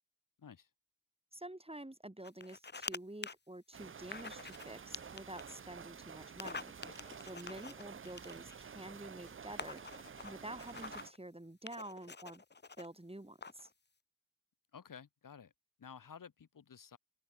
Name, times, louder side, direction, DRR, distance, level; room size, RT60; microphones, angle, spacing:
voice 1, 0.4-0.7 14.7-15.5 15.8-17.0, left 7 dB, 80° left, 0.8 m, -53 dB
voice 2, 1.3-6.7 7.2-12.4 12.8-13.7, right 1 dB, 20° right, 2.3 m, -49 dB
sound 1, 2.2-3.0 3.2-3.3 4.1-4.7 4.9-5.5 6.3-8.6 9.3-9.4 9.6-11.2 11.7-12.9 13.4-13.7, left 4 dB, 35° left, 0.7 m, -46 dB
sound 2, 3.7-11.1, right 6 dB, 40° right, 0.4 m, -51 dB
open air
wide cardioid pair, 45°, 32 cm